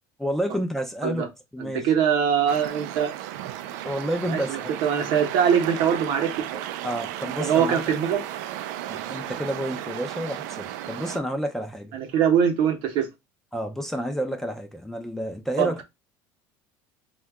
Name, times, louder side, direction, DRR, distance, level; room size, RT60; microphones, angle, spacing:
voice 1, 0.2-1.3 1.5-1.9 3.8-4.7 6.8-7.8 8.9-12.0 13.5-15.8, equal, 5° left, 0.4 m, -30 dB
voice 2, 1.6-3.1 4.2-6.6 7.3-8.2 11.9-13.1 15.6-15.7, right 8 dB, 65° right, 0.8 m, -23 dB
sound 1, 2.5-11.2, right 12 dB, 90° right, 0.3 m, -34 dB
2.7 x 2.2 x 3.4 m
cardioid pair, 145°, 9 cm